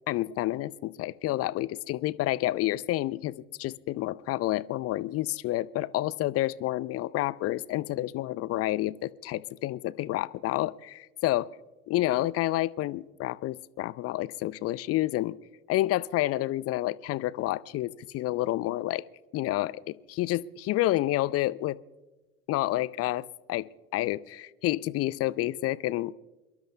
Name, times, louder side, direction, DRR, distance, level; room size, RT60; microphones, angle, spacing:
voice 1, 0.1-11.5 11.9-15.4 15.7-19.0 19.3-21.8 22.5-23.7 23.9-26.1, left 16 dB, 40° left, 19 dB, 0.5 m, -29 dB
28.5 x 13.0 x 2.2 m, 1.1 s
figure-of-eight pair, 60°, 39 cm